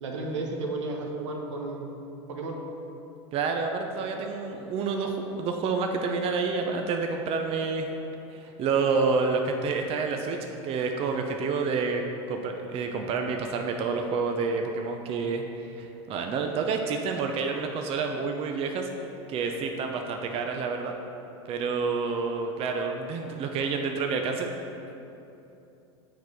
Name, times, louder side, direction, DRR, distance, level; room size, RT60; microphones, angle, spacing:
voice 1, 0.0-1.9 2.3-2.6, right 2 dB, 85° right, 1 dB, 1.1 m, -33 dB
voice 2, 3.3-7.9 8.3-12.0 12.3-18.9 19.3-20.9 21.5-24.5, right 4 dB, 40° right, 3 dB, 0.6 m, -29 dB
8.0 x 4.5 x 4.8 m, 2.9 s
hypercardioid pair, 105°, 15 cm